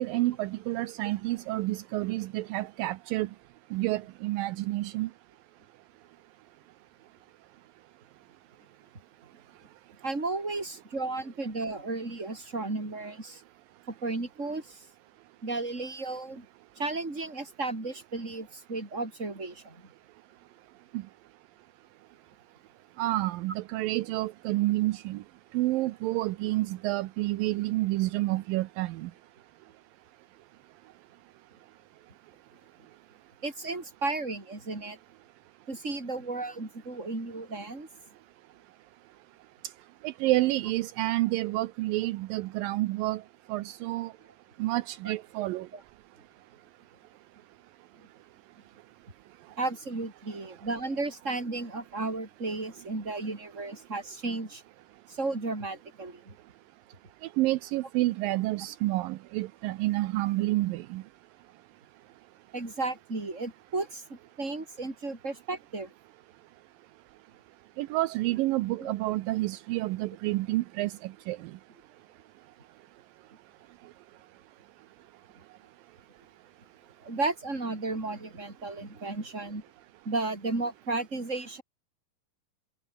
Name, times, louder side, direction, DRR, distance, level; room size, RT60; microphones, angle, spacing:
voice 1, 0.0-3.3 3.7-5.1 20.9-21.0 23.0-25.2 25.5-29.1 40.0-43.2 43.5-44.1 44.6-45.7 57.4-61.0 67.8-71.4, right 18 dB, 80° right, 2.4 m, -29 dB
voice 2, 10.0-13.4 13.9-14.8 15.4-16.4 16.8-19.8 33.4-35.0 35.7-37.9 45.0-45.1 45.7-45.8 49.6-54.6 55.1-56.3 62.5-65.9 68.8-68.9 77.0-79.6 80.0-81.6, right 3 dB, 20° right, 5.1 m, -34 dB
omnidirectional pair, 4.2 m